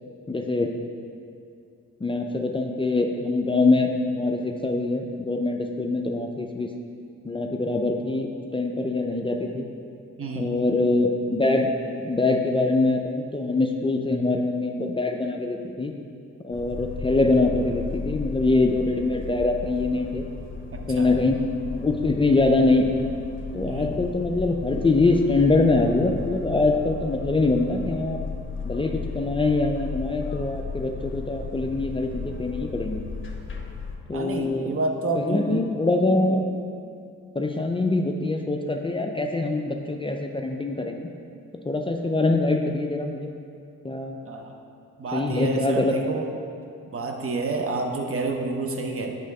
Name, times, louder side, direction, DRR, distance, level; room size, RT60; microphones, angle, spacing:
voice 1, 0.3-0.7 2.0-6.7 7.2-9.7 10.4-11.7 12.0-15.9 16.4-20.3 20.9-21.4 21.7-23.1 23.5-28.2 28.6-33.0 34.1-34.7 35.1-36.5 37.3-41.1 41.7-43.3 43.8-44.2 45.1-46.1, left 2 dB, 15° left, 3 dB, 0.5 m, -24 dB
voice 2, 10.2-10.5 20.7-21.1 23.7-24.0 34.1-35.7 44.3-44.5 45.0-46.2 46.9-49.1, right 3 dB, 45° right, 3 dB, 0.9 m, -29 dB
sound 1, 16.5-34.0, left 5 dB, 40° left, 1.0 m, -35 dB
8.1 x 3.6 x 5.3 m, 2.4 s
supercardioid pair, 60°, 32 cm